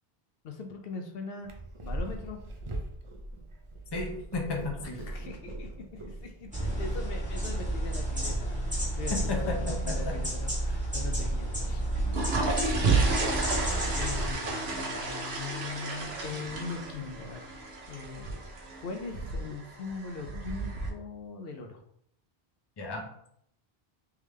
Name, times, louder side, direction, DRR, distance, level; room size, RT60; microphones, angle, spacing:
voice 1, 0.4-1.5 1.8-2.4 4.8-11.9 12.3-17.5 17.9-18.3 18.8-21.8, left 4 dB, 70° left, 4 dB, 0.8 m, -41 dB
Purr, 1.4-19.4, right 1 dB, 40° right, 0.5 m, -45 dB
voice 2, 3.9-5.0 9.1-9.6 9.9-10.0 22.8-23.1, left 3 dB, 30° left, 2 dB, 0.6 m, -33 dB
sound 1, 6.5-14.3, right 1 dB, 10° right, 1.2 m, -31 dB
sound 2, 11.8-20.9, right 3 dB, 90° right, 1.0 m, -32 dB
3.5 x 3.3 x 3.1 m, 0.70 s
omnidirectional pair, 1.0 m